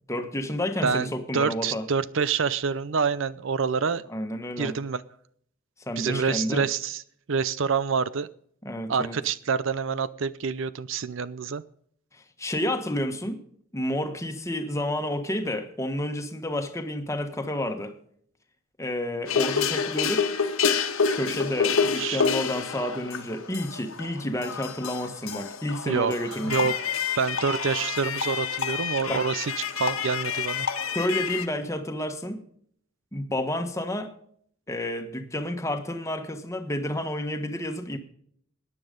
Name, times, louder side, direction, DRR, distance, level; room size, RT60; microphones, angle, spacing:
voice 1, 0.1-1.8 4.1-4.8 5.9-6.7 8.6-9.2 12.1-13.4 13.7-17.9 18.8-20.3 21.1-26.5 29.1-29.3 30.9-32.4 33.1-34.1 34.7-38.0, left 1 dB, 15° left, 1.3 m, -30 dB
voice 2, 0.8-4.0 4.6-5.0 6.0-7.0 7.3-8.3 8.9-11.6 22.0-22.2 25.9-26.7 27.2-30.7, right 5 dB, 65° right, 0.5 m, -27 dB
sound 1, 19.3-31.5, left 6 dB, 80° left, 1.6 m, -28 dB
14.0 x 9.9 x 5.2 m
head